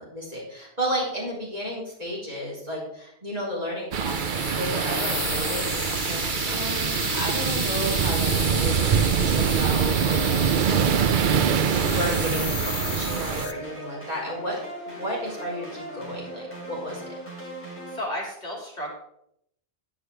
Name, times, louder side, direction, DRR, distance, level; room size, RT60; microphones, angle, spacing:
voice 1, 0.0-11.3 11.6-14.6 14.8-17.1, equal, 35° right, -6 dB, 4.0 m, -33 dB
sound 1, 3.9-13.5, right 7 dB, 55° right, 0.6 m, -24 dB
sound 2, 4.1-13.5, left 7 dB, 65° left, 1.0 m, -34 dB
sound 3, 10.0-18.0, right 1 dB, 10° left, 3.3 m, -39 dB
voice 2, 17.9-18.9, left 1 dB, 40° left, -1 dB, 2.5 m, -32 dB
9.8 x 9.7 x 3.4 m, 0.75 s
omnidirectional pair, 1.1 m